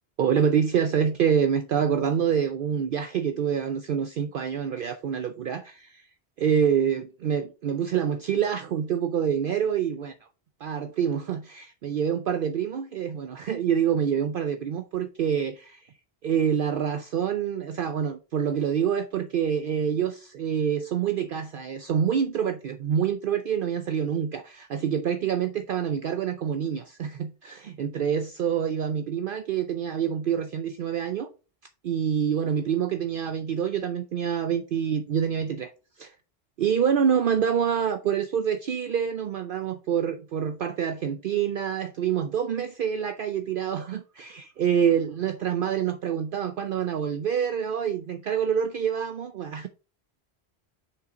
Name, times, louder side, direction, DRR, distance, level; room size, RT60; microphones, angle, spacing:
voice 1, 0.2-6.1 6.4-10.1 10.6-15.9 16.2-31.3 31.8-35.7 36.0-36.1 36.6-49.7, right 8 dB, 60° right, 0.7 m, -26 dB
6.8 x 5.5 x 3.8 m
omnidirectional pair, 1.1 m